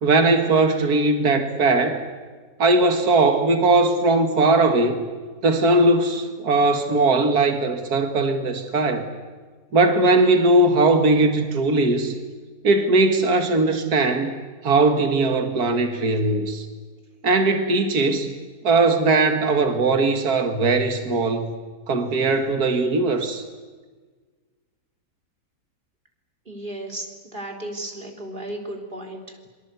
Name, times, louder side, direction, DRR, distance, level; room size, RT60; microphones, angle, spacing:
voice 1, 0.0-2.1 2.6-5.0 5.4-9.1 9.7-12.1 12.6-14.3 14.6-16.7 17.2-18.3 18.6-21.5 21.9-23.4, right 2 dB, 75° right, 7 dB, 2.4 m, -19 dB
voice 2, 26.5-27.1 27.3-29.5, right 1 dB, 30° right, 3 dB, 3.8 m, -34 dB
27.0 x 24.0 x 8.2 m, 1.4 s
omnidirectional pair, 1.7 m